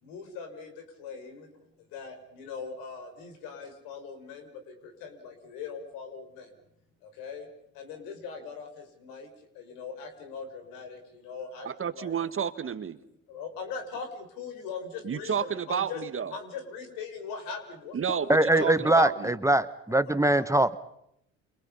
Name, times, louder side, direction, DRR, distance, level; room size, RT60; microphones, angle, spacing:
voice 1, 0.0-1.5 1.9-6.5 7.0-7.5 7.7-9.3 9.5-12.1 13.3-16.0 16.3-19.0 19.9-20.5, left 5 dB, 75° left, 5 dB, 5.9 m, -41 dB
voice 2, 11.6-13.0 15.0-16.4 17.9-19.4, right 7 dB, 40° right, 12 dB, 1.7 m, -31 dB
voice 3, 18.3-20.8, right 1 dB, 10° right, 14 dB, 1.1 m, -22 dB
29.5 x 28.0 x 5.6 m, 0.78 s
hypercardioid pair, 55°, 34 cm